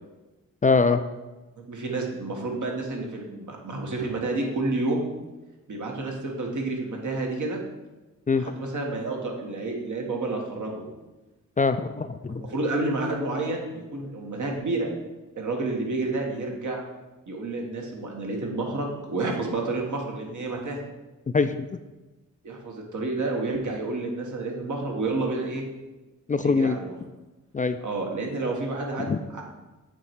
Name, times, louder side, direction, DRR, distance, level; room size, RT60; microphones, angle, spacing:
voice 1, 0.6-1.0 8.3-8.6 11.6-12.4 21.3-21.6 26.3-26.8 27.5-27.8 29.1-29.2, left 4 dB, 25° left, 9 dB, 0.3 m, -23 dB
voice 2, 1.6-5.1 5.7-7.6 8.3-10.9 12.3-14.9 15.4-16.8 17.3-20.8 22.4-25.6 26.4-26.9 27.8-29.4, right 2 dB, 65° right, 1 dB, 1.4 m, -30 dB
8.4 x 3.1 x 4.6 m, 1.1 s
cardioid pair, 50°, 33 cm